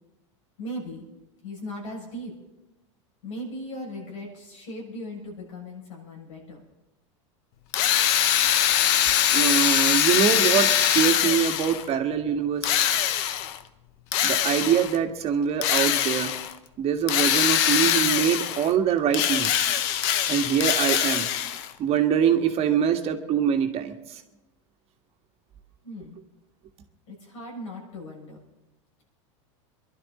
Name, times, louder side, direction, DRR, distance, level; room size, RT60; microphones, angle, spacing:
voice 1, 0.6-1.0 1.4-2.3 3.2-6.6 25.8-26.2 27.1-28.4, equal, 90° left, -1 dB, 7.0 m, -38 dB
Drill, 7.7-11.9 12.6-13.6 14.1-15.0 15.6-16.5 17.1-18.7 19.1-21.7, left 11 dB, 60° left, 1.0 m, -23 dB
voice 2, 9.3-12.8 14.2-16.3 16.8-19.8 20.3-21.3 21.8-23.9, right 8 dB, 40° right, 5 dB, 1.7 m, -24 dB
23.5 x 11.5 x 4.2 m, 0.96 s
supercardioid pair, 110°, 16 cm